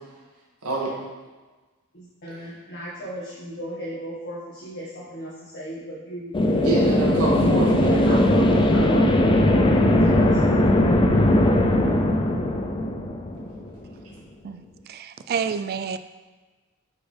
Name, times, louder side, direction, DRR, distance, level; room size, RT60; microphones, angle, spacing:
voice 1, 0.6-1.0 6.6-8.5, right 2 dB, 90° right, -4 dB, 1.9 m, -27 dB
voice 2, 1.9-6.9 7.8-10.6, equal, 50° left, -8 dB, 1.6 m, -35 dB
sound 1, 6.3-13.9, left 1 dB, 20° left, 0.4 m, -19 dB
voice 3, 14.9-16.0, right 6 dB, 45° right, 11 dB, 0.3 m, -28 dB
9.2 x 4.3 x 3.3 m, 1.3 s
head